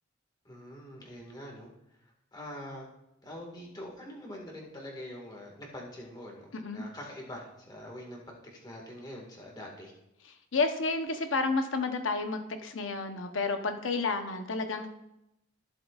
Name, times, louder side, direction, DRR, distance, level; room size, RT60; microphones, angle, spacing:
voice 1, 0.4-1.7 2.3-2.9 3.2-8.2 8.5-9.9, left 1 dB, 20° left, -1 dB, 1.8 m, -44 dB
voice 2, 6.5-6.8 10.5-15.0, left 3 dB, 75° left, 6 dB, 0.9 m, -31 dB
15.0 x 7.5 x 2.4 m, 0.87 s
head